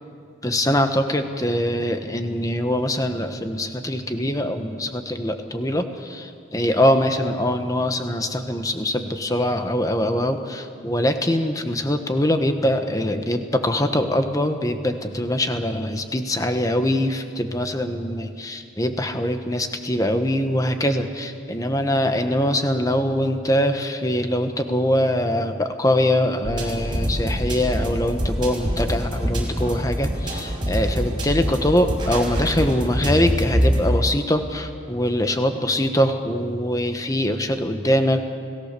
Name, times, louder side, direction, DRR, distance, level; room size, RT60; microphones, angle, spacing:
voice 1, 0.4-38.3, left 1 dB, 15° left, 7 dB, 1.3 m, -23 dB
sound 1, 26.4-33.8, equal, 25° right, 4.9 m, -25 dB
29.5 x 18.0 x 6.9 m, 2.3 s
head